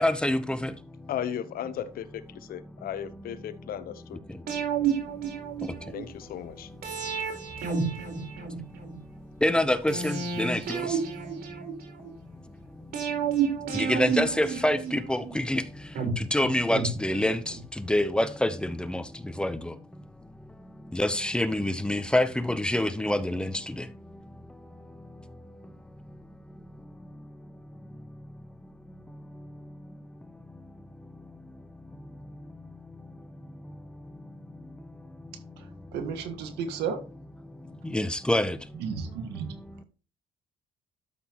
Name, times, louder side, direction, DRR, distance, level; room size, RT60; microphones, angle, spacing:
voice 1, 0.0-1.1 2.8-2.9 4.3-5.9 6.4-35.9 37.4-38.8 39.4-39.8, left 1 dB, 5° left, 0.8 m, -31 dB
voice 2, 1.1-4.2 5.9-6.7, left 9 dB, 60° left, 0.9 m, -36 dB
sound 1, 4.5-6.0 6.8-9.0 9.9-12.1 12.9-15.3 16.0-17.6 17.9-18.0, right 6 dB, 65° right, 4.4 m, -31 dB
voice 3, 35.9-37.0 38.8-39.6, right 6 dB, 85° right, 1.7 m, -33 dB
12.5 x 5.8 x 3.0 m
cardioid pair, 110°, 17 cm